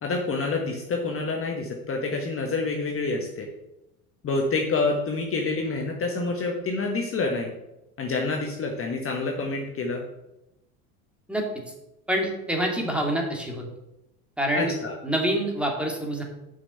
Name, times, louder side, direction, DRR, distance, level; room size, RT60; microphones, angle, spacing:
voice 1, 0.0-3.5 4.2-7.5 8.0-10.0 14.5-15.0, left 3 dB, 30° left, 1 dB, 1.4 m, -27 dB
voice 2, 12.1-13.6 14.4-14.7 15.0-16.2, right 1 dB, ahead, 1 dB, 2.3 m, -26 dB
6.6 x 5.8 x 6.8 m, 0.90 s
hypercardioid pair, 80°, 45 cm